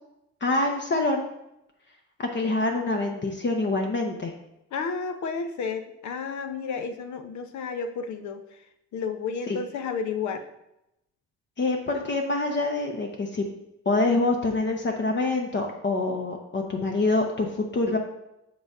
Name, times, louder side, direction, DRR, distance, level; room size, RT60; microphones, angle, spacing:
voice 1, 0.4-1.2 2.3-4.3 9.5-9.6 11.6-13.4 13.9-18.0, left 2 dB, 35° left, 1 dB, 0.8 m, -25 dB
voice 2, 4.7-8.6 8.9-10.4, left 5 dB, 70° left, 8 dB, 0.8 m, -32 dB
6.6 x 4.0 x 4.8 m, 0.86 s
cardioid pair, 90°, 30 cm